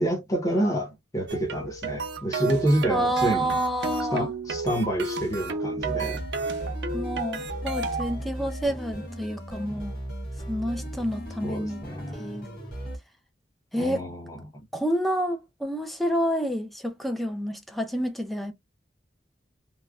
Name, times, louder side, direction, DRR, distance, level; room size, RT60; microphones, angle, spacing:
voice 1, 0.0-3.5 4.1-6.2 11.4-12.2 13.8-14.4, right 1 dB, 20° left, 0.9 m, -28 dB
sound 1, 1.3-8.1, right 3 dB, 65° right, 0.6 m, -32 dB
voice 2, 2.9-4.3 6.9-10.0 10.5-11.8 12.1-12.5 13.7-14.1 14.7-18.5, equal, ahead, 0.5 m, -29 dB
sound 2, 5.8-13.0, right 1 dB, 55° left, 1.3 m, -37 dB
3.1 x 2.2 x 2.3 m
head